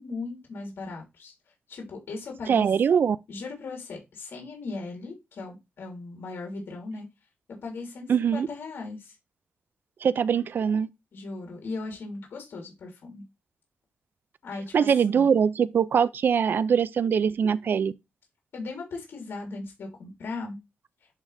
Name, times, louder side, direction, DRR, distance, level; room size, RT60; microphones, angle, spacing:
voice 1, 0.0-1.3 1.7-2.7 3.3-7.0 7.6-9.2 11.1-13.2 14.4-15.3 18.5-20.6, left 3 dB, 75° left, 3.2 m, -38 dB
voice 2, 2.5-3.2 8.1-8.5 10.0-10.9 14.7-17.9, right 7 dB, 65° right, 0.4 m, -22 dB
10.0 x 3.8 x 3.3 m
wide cardioid pair, 120°, 4 cm